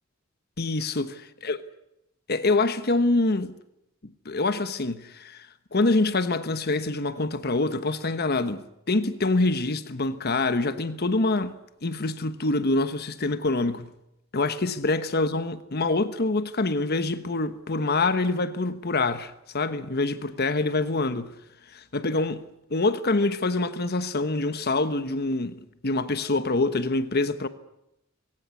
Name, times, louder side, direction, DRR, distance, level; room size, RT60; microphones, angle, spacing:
voice 1, 0.6-1.1 1.4-1.6 2.3-3.6 4.2-13.9 14.3-21.3 21.7-22.4 22.7-27.5, left 2 dB, 50° left, 1.2 m, -25 dB
22.0 x 17.5 x 9.8 m
head